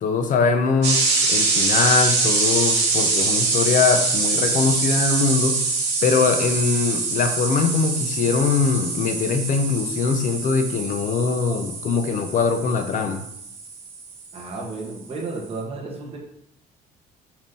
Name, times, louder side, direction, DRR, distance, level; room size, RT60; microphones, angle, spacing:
voice 1, 0.0-5.6 6.0-13.2, left 5 dB, 45° left, 6 dB, 0.8 m, -22 dB
sound 1, 0.8-14.4, right 4 dB, 70° right, 2.6 m, -24 dB
voice 2, 14.3-16.2, right 3 dB, 35° right, -2 dB, 1.5 m, -32 dB
7.4 x 3.0 x 5.4 m, 0.74 s
cardioid pair, 175°, 18 cm